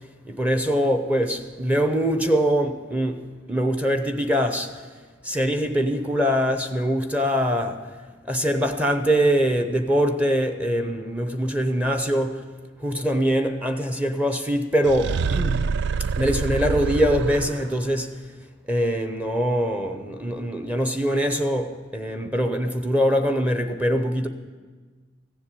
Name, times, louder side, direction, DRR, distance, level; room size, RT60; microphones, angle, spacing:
voice 1, 0.2-3.2 3.5-4.7 5.2-7.8 8.3-12.4 12.8-15.6 16.2-18.1 18.7-24.3, equal, 10° right, 0.7 m, -23 dB
sound 1, 14.8-17.9, right 5 dB, 60° right, 0.3 m, -26 dB
15.0 x 7.1 x 8.9 m
head